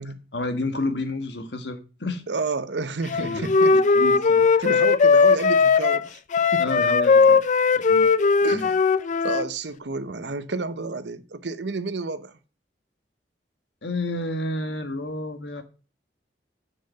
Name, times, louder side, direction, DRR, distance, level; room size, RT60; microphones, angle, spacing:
voice 1, 0.3-2.2 3.2-4.6 6.6-7.4 7.7-8.1 8.5-8.7 13.8-15.6, left 2 dB, 75° left, 1.5 m, -30 dB
voice 2, 2.3-3.8 4.6-6.2 6.5-6.6 8.4-8.8 9.2-12.4, right 3 dB, 75° right, 0.8 m, -30 dB
Wind instrument woodwind instrument, 3.1-9.5, left 4 dB, 45° left, 0.4 m, -18 dB
7.5 x 6.7 x 6.5 m
head